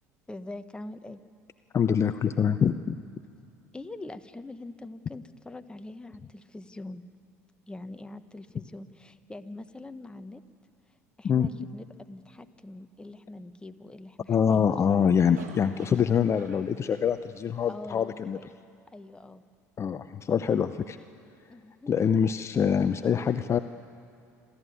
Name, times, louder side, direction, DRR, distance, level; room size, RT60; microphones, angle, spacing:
voice 1, 0.3-1.2 3.7-7.0 7.7-10.4 11.2-15.5 17.7-18.5 18.9-19.4 21.5-21.9, left 2 dB, 10° left, 9 dB, 1.2 m, -43 dB
voice 2, 1.7-3.0 11.2-11.5 14.3-18.4 19.8-21.0 21.9-23.6, left 7 dB, 35° left, 10 dB, 0.7 m, -25 dB
sound 1, 14.4-17.8, right 5 dB, 85° right, 2.2 m, -51 dB
26.5 x 13.0 x 9.4 m, 2.5 s
hypercardioid pair, 70°, 8 cm